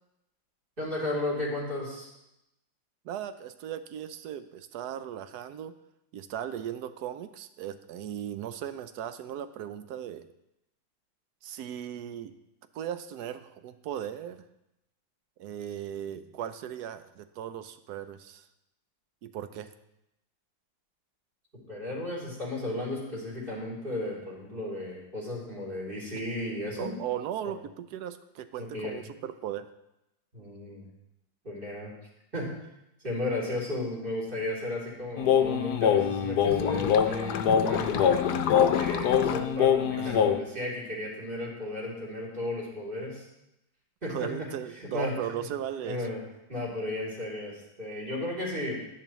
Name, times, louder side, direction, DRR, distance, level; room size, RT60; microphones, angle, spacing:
voice 1, 0.8-2.1 21.7-27.0 27.4-27.5 28.6-28.9 30.3-30.8 31.4-31.9 32.3-32.5 33.0-43.3 44.0-44.5 44.7-45.1 45.8-46.2 46.5-48.8, left 1 dB, 25° right, -5 dB, 3.2 m, -34 dB
voice 2, 3.0-5.8 6.1-10.2 11.4-12.3 12.7-14.4 15.4-18.5 19.2-19.7 26.8-29.7 40.0-40.3 44.1-46.1, right 10 dB, 70° right, 11 dB, 1.0 m, -37 dB
sound 1, 35.2-40.4, left 8 dB, 65° left, 1.1 m, -24 dB
11.5 x 10.5 x 3.1 m, 0.87 s
omnidirectional pair, 2.1 m